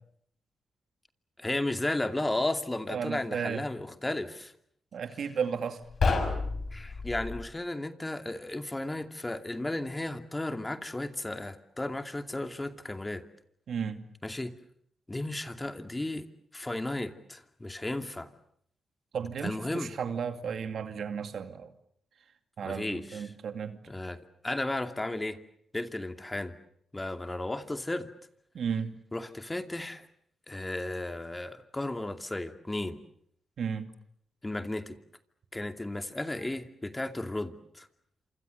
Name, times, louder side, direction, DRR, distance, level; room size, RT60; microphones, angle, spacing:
voice 1, 1.4-4.5 6.7-13.2 14.2-14.5 15.1-16.3 16.5-18.3 19.4-19.9 22.6-23.3 23.9-24.2 24.4-25.4 25.7-26.5 26.9-28.1 29.1-30.1 30.5-33.0 34.4-35.0 35.5-37.9, left 2 dB, 20° left, 8 dB, 2.5 m, -34 dB
voice 2, 2.9-3.6 4.9-5.8 13.7-14.0 19.1-21.7 22.6-23.8 28.5-29.0 33.6-33.9, right 6 dB, 70° right, 8 dB, 2.4 m, -34 dB
sound 1, 5.8-7.5, left 4 dB, 55° left, 6.5 m, -29 dB
27.5 x 26.0 x 6.8 m, 0.68 s
supercardioid pair, 55°, 0 cm